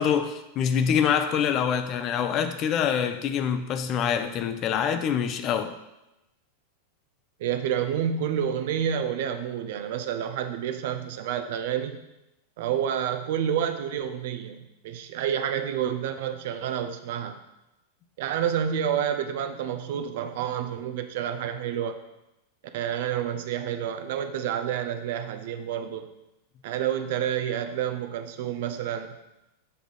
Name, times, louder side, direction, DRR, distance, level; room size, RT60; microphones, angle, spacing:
voice 1, 0.0-5.8, left 8 dB, 35° left, 0.5 m, -25 dB
voice 2, 7.4-12.0 12.6-17.4 18.2-22.0 22.7-26.1 26.6-29.2, right 9 dB, 55° right, 0.5 m, -29 dB
6.8 x 3.7 x 5.0 m
figure-of-eight pair, 90°, 0 cm